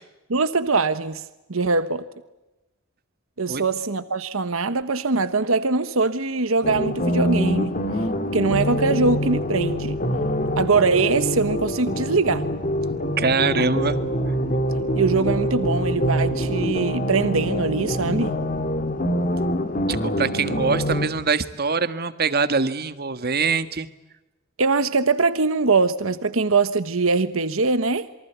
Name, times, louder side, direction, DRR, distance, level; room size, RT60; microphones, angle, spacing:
voice 1, 0.3-1.2 1.5-2.0 3.4-7.7 8.3-10.0 10.6-12.4 14.9-18.3 24.6-28.1, right 3 dB, 75° right, 1.2 m, -22 dB
sound 1, 6.6-21.1, equal, 40° left, 2.4 m, -25 dB
voice 2, 13.2-14.0 19.9-23.9, right 4 dB, 50° right, 1.6 m, -23 dB
27.5 x 23.5 x 8.2 m
head